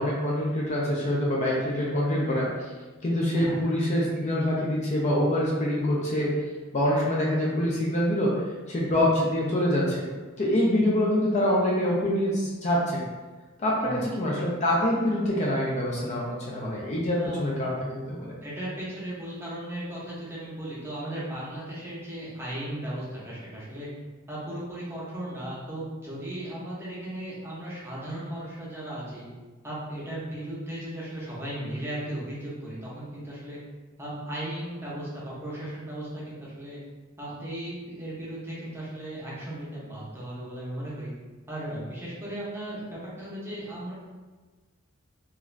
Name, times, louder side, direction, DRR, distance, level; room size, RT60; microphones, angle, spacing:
voice 1, 0.0-2.7 3.0-6.4 6.7-8.3 8.7-10.1 10.4-13.0 13.6-18.3, left 1 dB, 35° left, -4 dB, 0.4 m, -25 dB
voice 2, 18.4-23.9 24.3-29.3 29.6-33.6 34.0-36.8 37.2-41.1 41.5-43.9, right 1 dB, 10° right, -7 dB, 0.7 m, -36 dB
2.4 x 2.3 x 3.1 m, 1.3 s
head